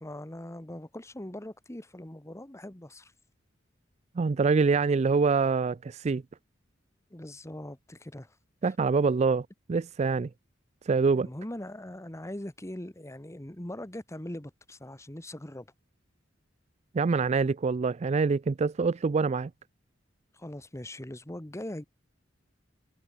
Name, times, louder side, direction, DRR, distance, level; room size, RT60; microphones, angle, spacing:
voice 1, 0.0-3.1 7.1-8.3 8.6-8.7 11.1-15.7 20.3-21.8, left 1 dB, 15° left, 1.4 m, -41 dB
voice 2, 4.2-6.2 8.6-10.3 10.9-11.3 16.9-19.5, right 4 dB, 35° right, 0.4 m, -25 dB
head